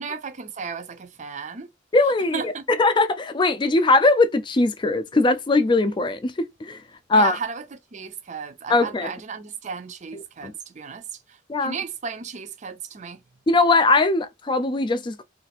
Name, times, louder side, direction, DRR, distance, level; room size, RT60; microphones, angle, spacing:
voice 1, 0.0-1.7 2.3-2.6 7.1-7.7 7.9-11.0 11.3-13.2, right 5 dB, 40° right, 0.5 m, -34 dB
voice 2, 1.9-6.8 7.1-7.4 8.7-9.1 10.1-10.5 11.5-11.7 13.5-15.2, left 2 dB, 25° left, 0.4 m, -20 dB
2.5 x 2.5 x 4.0 m
head